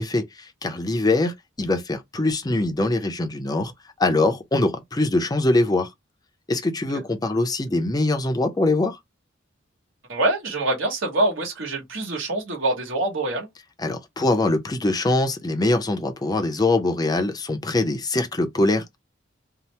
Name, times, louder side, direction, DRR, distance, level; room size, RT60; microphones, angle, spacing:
voice 1, 0.0-3.7 4.0-5.9 6.5-9.0 13.8-18.9, left 2 dB, 20° left, 0.5 m, -23 dB
voice 2, 10.1-13.5, right 2 dB, 75° right, 1.3 m, -25 dB
2.8 x 2.0 x 3.1 m
head